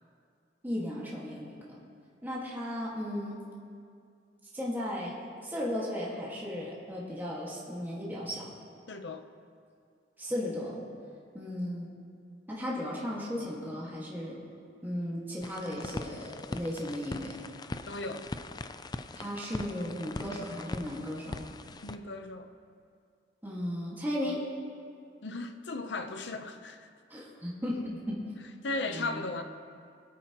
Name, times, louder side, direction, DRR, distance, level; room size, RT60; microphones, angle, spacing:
voice 1, 0.6-1.8 2.2-3.4 4.5-5.2 5.4-8.5 10.2-10.8 11.3-11.9 12.5-14.4 14.8-17.4 19.1-21.4 23.4-24.4 27.1-28.2 28.9-29.2, left 1 dB, 10° right, -6 dB, 1.7 m, -35 dB
voice 2, 8.9-9.3 17.9-18.3 21.8-22.5 25.2-26.9 28.6-29.4, left 3 dB, 75° left, 7 dB, 0.7 m, -36 dB
sound 1, 15.4-22.0, left 2 dB, 25° left, 0.3 m, -41 dB
22.0 x 8.6 x 3.0 m, 2.3 s
head